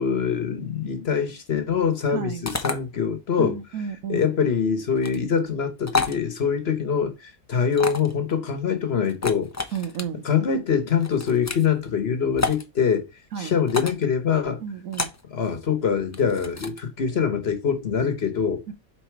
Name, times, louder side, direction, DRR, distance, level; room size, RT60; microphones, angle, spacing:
voice 1, 0.0-9.8 10.2-13.1 13.4-14.6 15.3-18.6, left 7 dB, 50° left, 1.2 m, -24 dB
sound 1, 2.4-2.7 4.9-5.2 5.9-6.2 7.7-8.1 9.1-10.0 11.0-11.7 12.4-12.6 13.7-14.0 14.9-15.2 16.1-16.8, left 3 dB, 25° left, 0.4 m, -29 dB
voice 2, 3.4-4.2 9.7-10.2 13.3-13.5 14.6-15.1 18.7-18.8, right 8 dB, 80° right, 1.2 m, -31 dB
5.6 x 4.2 x 4.6 m
omnidirectional pair, 1.4 m